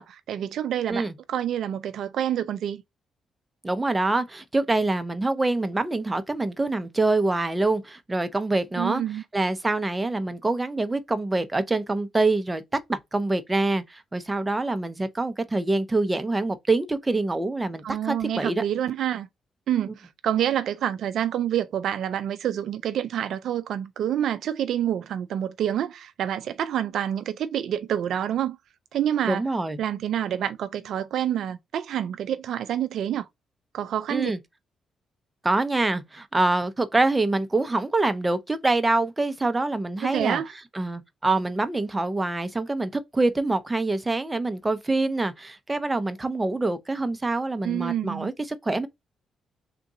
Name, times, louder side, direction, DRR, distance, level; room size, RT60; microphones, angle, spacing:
voice 1, 0.0-2.8 8.8-9.2 17.8-19.3 19.7-28.6 28.9-29.4 29.8-33.3 33.7-34.3 40.0-40.5 47.6-48.3, right 10 dB, 75° right, 0.3 m, -27 dB
voice 2, 3.6-9.0 9.3-12.6 12.9-18.6 29.3-29.8 34.1-34.4 35.4-40.4 40.7-48.9, right 2 dB, 20° right, 0.7 m, -25 dB
3.6 x 2.6 x 4.0 m
supercardioid pair, 60°, 0 cm